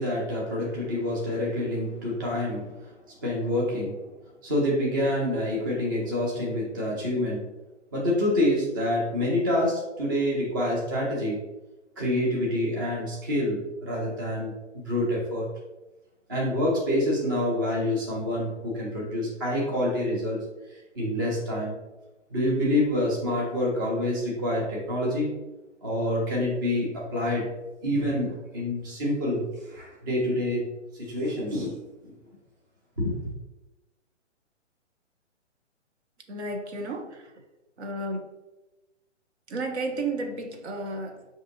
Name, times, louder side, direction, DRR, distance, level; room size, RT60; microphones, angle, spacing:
voice 1, 0.0-2.9 3.2-4.0 4.4-7.4 7.9-11.4 12.0-15.5 16.3-20.4 21.0-21.8 22.3-25.4 25.8-27.5 27.8-30.7 31.0-32.1 33.0-33.3, left 1 dB, 20° right, 0.4 m, -27 dB
voice 2, 36.3-37.3 37.8-38.3 39.5-41.3, right 2 dB, 65° right, 0.7 m, -32 dB
5.4 x 2.6 x 2.5 m
figure-of-eight pair, 135°, 37 cm